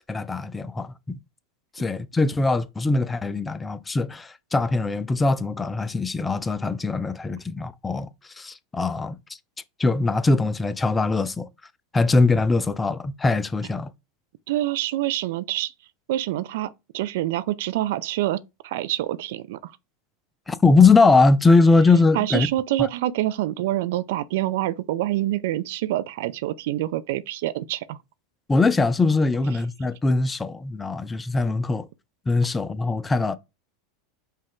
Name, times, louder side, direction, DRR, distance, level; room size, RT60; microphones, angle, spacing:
voice 1, 0.1-1.2 1.8-8.1 8.4-9.2 9.8-11.5 11.9-13.9 20.5-22.5 22.8-22.9 28.5-31.9 32.3-33.4, left 3 dB, 15° left, 0.4 m, -21 dB
voice 2, 14.5-15.7 16.1-19.7 22.1-28.0, right 14 dB, 70° right, 0.3 m, -26 dB
5.3 x 2.4 x 3.5 m
hypercardioid pair, 100°, 0 cm